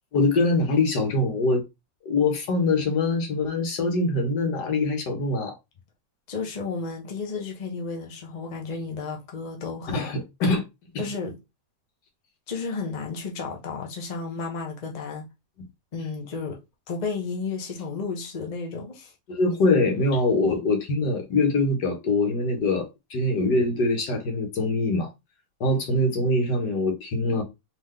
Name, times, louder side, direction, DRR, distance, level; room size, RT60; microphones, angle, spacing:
voice 1, 0.1-1.6 2.1-5.5 9.9-10.6 10.9-11.0 19.3-25.1 25.6-27.4, left 2 dB, 80° left, 1.8 m, -23 dB
voice 2, 6.3-10.1 11.0-11.4 12.5-15.3 15.9-16.6 16.9-19.1, left 4 dB, 30° left, 0.9 m, -32 dB
3.8 x 3.6 x 3.3 m
omnidirectional pair, 1.8 m